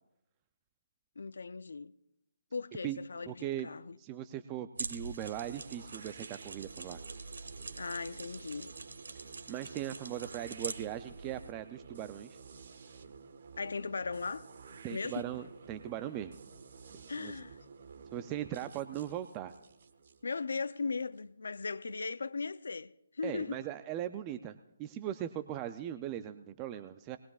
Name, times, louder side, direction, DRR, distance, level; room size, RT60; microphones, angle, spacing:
voice 1, 1.2-1.9 2.5-4.0 7.8-8.7 13.6-14.5 14.9-15.2 17.1-17.6 20.2-23.6, left 4 dB, 75° left, 0.5 m, -38 dB
voice 2, 3.3-3.7 4.0-7.0 9.5-12.4 14.8-16.4 17.2-17.3 18.1-19.5 23.2-27.2, right 11 dB, 20° right, 0.4 m, -39 dB
sound 1, 4.7-11.5, right 3 dB, 80° right, 1.5 m, -45 dB
sound 2, 5.4-21.2, right 5 dB, 50° right, 1.3 m, -52 dB
20.5 x 20.0 x 2.4 m
hypercardioid pair, 165°, 0 cm